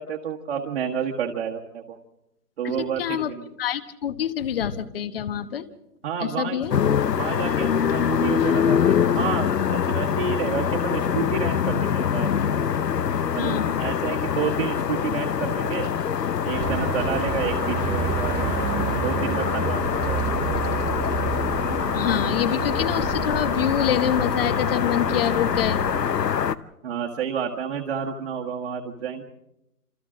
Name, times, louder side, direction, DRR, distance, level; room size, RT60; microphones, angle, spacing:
voice 1, 0.0-2.0 2.6-3.4 6.0-6.6 7.2-12.7 13.3-15.9 16.4-18.5 19.0-20.3 26.8-29.2, right 8 dB, 45° right, 1 dB, 1.6 m, -30 dB
voice 2, 2.6-3.3 3.6-5.7 6.2-6.8 13.4-13.8 21.9-25.8, left 9 dB, 35° left, 13 dB, 1.2 m, -26 dB
sound 1, 6.7-26.5, left 8 dB, 85° left, 0.9 m, -24 dB
sound 2, 16.5-26.1, right 8 dB, 15° right, 1.2 m, -30 dB
27.5 x 27.0 x 3.8 m, 0.86 s
hypercardioid pair, 150°, 48 cm